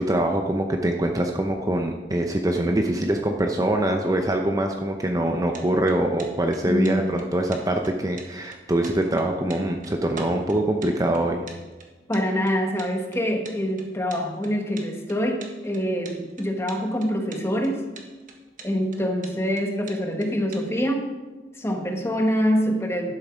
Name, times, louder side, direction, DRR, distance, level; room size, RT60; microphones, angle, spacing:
voice 1, 0.0-11.5, right 1 dB, 20° right, 3 dB, 0.6 m, -24 dB
sound 1, 5.3-20.7, right 3 dB, 50° right, 1.4 m, -44 dB
voice 2, 6.6-7.2 12.1-17.8 18.6-21.1 21.6-23.1, equal, 15° left, 3 dB, 1.2 m, -25 dB
12.0 x 7.6 x 5.0 m, 1.2 s
head